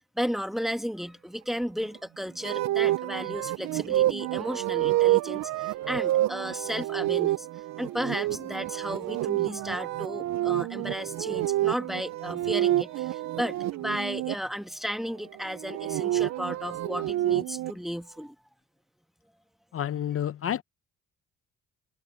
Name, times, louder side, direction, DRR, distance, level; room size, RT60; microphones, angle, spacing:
voice 1, 0.2-7.5 7.8-18.3, equal, ahead, 1.6 m, -34 dB
sound 1, 2.4-14.4 15.5-17.7, right 15 dB, 65° right, 0.5 m, -28 dB
voice 2, 19.7-20.6, left 10 dB, 50° left, 0.7 m, -29 dB
cardioid pair, 90°, 30 cm